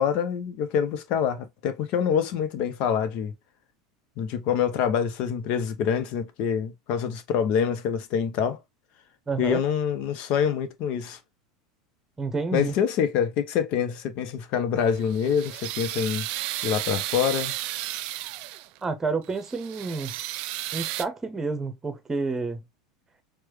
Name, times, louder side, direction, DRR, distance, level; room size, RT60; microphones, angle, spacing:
voice 1, 0.0-3.3 4.2-8.6 9.4-11.2 12.5-16.3 16.6-17.5, left 8 dB, 50° left, 0.8 m, -26 dB
voice 2, 9.3-9.6 12.2-12.7 18.8-20.2 20.7-22.6, right 4 dB, 15° right, 0.9 m, -29 dB
sound 1, 14.8-18.8 19.3-21.0, right 15 dB, 55° right, 0.3 m, -33 dB
4.6 x 2.3 x 3.1 m
figure-of-eight pair, 80°, 2 cm